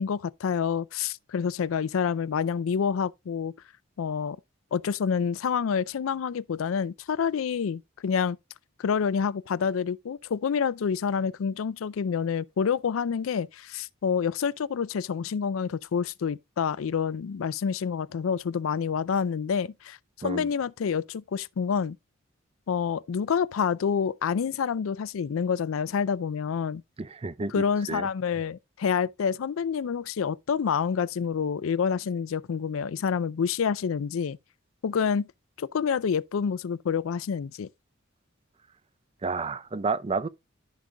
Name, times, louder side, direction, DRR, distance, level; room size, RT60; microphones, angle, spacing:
voice 1, 0.0-3.5 4.0-4.4 4.7-8.4 8.8-22.0 22.7-26.8 27.5-34.4 34.8-35.3 35.6-37.7, left 6 dB, 85° left, 0.4 m, -28 dB
voice 2, 27.0-28.1 39.2-40.3, right 4 dB, 30° right, 0.5 m, -31 dB
14.0 x 5.2 x 2.2 m
head